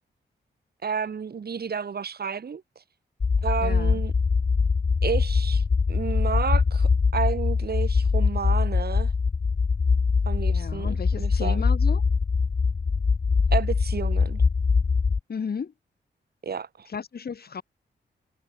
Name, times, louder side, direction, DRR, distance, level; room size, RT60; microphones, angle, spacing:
voice 1, 0.8-2.6 3.4-4.1 5.0-5.6 5.9-9.1 10.3-11.6 13.5-14.4 16.4-16.9, right 6 dB, 60° right, 6.1 m, -31 dB
sound 1, 3.2-15.2, left 5 dB, 35° left, 1.2 m, -23 dB
voice 2, 3.6-4.0 10.5-12.0 15.3-15.7 16.9-17.6, left 6 dB, 55° left, 6.3 m, -34 dB
cardioid pair, 95°, 19 cm